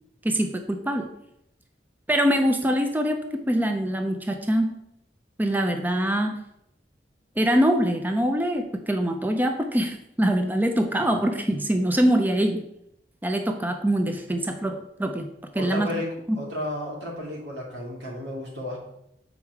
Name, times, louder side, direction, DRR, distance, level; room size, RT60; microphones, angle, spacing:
voice 1, 0.2-1.1 2.1-4.8 5.4-6.4 7.4-12.6 13.2-15.3 15.5-15.9, equal, 10° right, 5 dB, 0.5 m, -24 dB
voice 2, 15.5-18.8, left 1 dB, 85° right, -3 dB, 2.4 m, -33 dB
7.1 x 4.7 x 4.6 m, 0.80 s
head